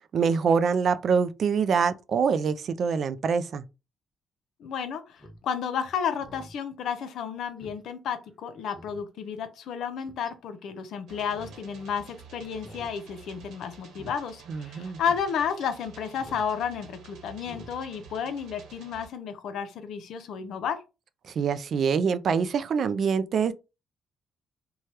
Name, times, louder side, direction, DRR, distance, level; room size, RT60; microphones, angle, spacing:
voice 1, 0.1-3.6 14.5-15.0 21.2-23.5, right 6 dB, 55° right, 0.3 m, -25 dB
voice 2, 4.6-20.8, left 7 dB, 75° left, 0.6 m, -32 dB
Speech synthesizer, 5.2-5.4 5.8-5.9 6.2-6.5 6.9-7.0 7.6-7.8 8.2-8.3 8.7-9.0 10.0-10.3 11.2-11.6 11.9-12.0 12.6-12.9 13.2-13.4 13.9-14.1 14.6-14.7 15.0-15.2 16.2-16.5 16.8-16.9 17.4-17.7 18.0-18.1, equal, 10° right, 0.7 m, -47 dB
sound 1, 11.1-19.1, right 6 dB, 80° right, 1.0 m, -50 dB
2.8 x 2.2 x 3.1 m
cardioid pair, 90°, 0 cm